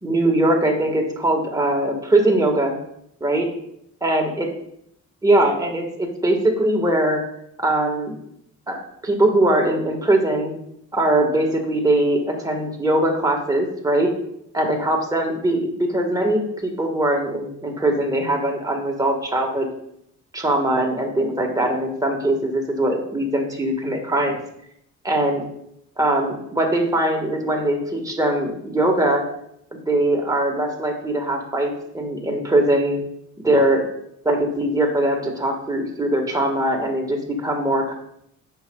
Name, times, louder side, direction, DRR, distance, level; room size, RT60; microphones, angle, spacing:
voice 1, 0.0-2.7 3.2-3.5 4.0-4.5 5.2-7.2 7.6-8.2 8.7-10.5 10.9-14.1 14.5-19.7 20.3-24.4 25.0-25.4 26.0-29.2 29.9-33.0 33.4-33.9 34.2-37.9, right 1 dB, 10° right, 1 dB, 1.6 m, -21 dB
9.2 x 6.3 x 2.3 m, 0.74 s
cardioid pair, 90°, 30 cm